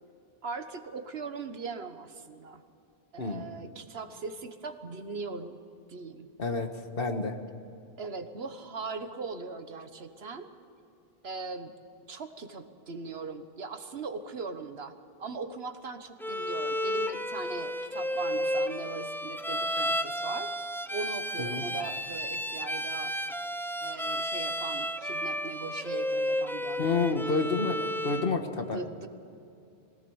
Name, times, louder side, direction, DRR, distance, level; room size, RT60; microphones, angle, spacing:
voice 1, 0.4-2.6 3.1-5.6 5.9-6.3 8.0-10.5 11.2-11.7 12.1-14.9 15.2-20.5 20.9-23.1 23.8-27.6 28.7-29.1, right 4 dB, 75° right, 8 dB, 1.5 m, -40 dB
voice 2, 6.4-7.3 21.4-21.6 26.8-27.8 28.0-28.8, left 4 dB, 65° left, 6 dB, 1.6 m, -29 dB
Bowed string instrument, 16.2-28.4, equal, 5° left, 0.5 m, -32 dB
21.5 x 17.5 x 7.1 m, 2.7 s
omnidirectional pair, 1.1 m